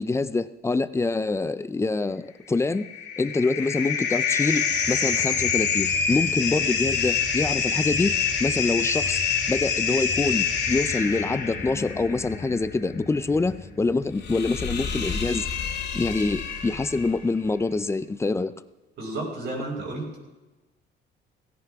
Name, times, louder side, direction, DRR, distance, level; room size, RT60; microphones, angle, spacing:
voice 1, 0.0-2.9 3.2-8.1 8.4-9.2 9.5-15.5 15.9-18.5, left 3 dB, 15° left, 14 dB, 0.5 m, -25 dB
sound 1, 2.6-17.2, left 6 dB, 55° left, 2.5 m, -27 dB
voice 2, 19.0-20.2, right 2 dB, 60° right, -2 dB, 6.1 m, -32 dB
17.5 x 16.5 x 3.6 m, 1.1 s
cardioid pair, 145°, 20 cm